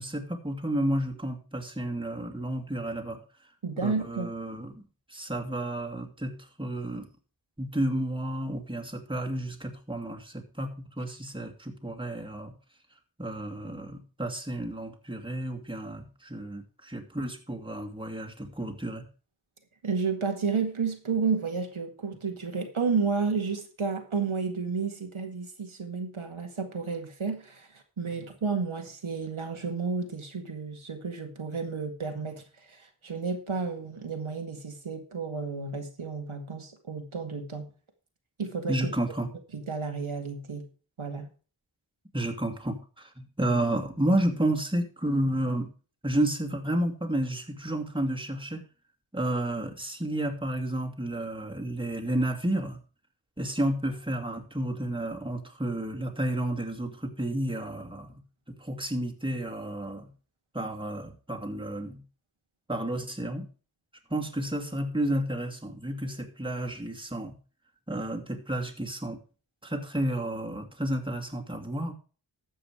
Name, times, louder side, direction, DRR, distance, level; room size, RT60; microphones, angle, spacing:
voice 1, 0.0-3.2 3.8-7.1 7.6-10.7 11.0-12.5 13.2-19.0 38.7-39.3 42.1-45.7 46.0-48.6 49.1-52.8 53.4-58.1 58.5-60.1 60.5-62.0 62.7-63.5 64.1-67.3 67.9-69.2 69.6-71.9, right 1 dB, 10° right, 1 dB, 2.5 m, -31 dB
voice 2, 3.6-4.3 19.8-27.7 28.0-37.7 38.4-38.9 39.5-40.7 41.0-41.3, right 5 dB, 80° right, 4 dB, 2.0 m, -31 dB
13.0 x 7.7 x 4.9 m, 0.37 s
wide cardioid pair, 55°, 48 cm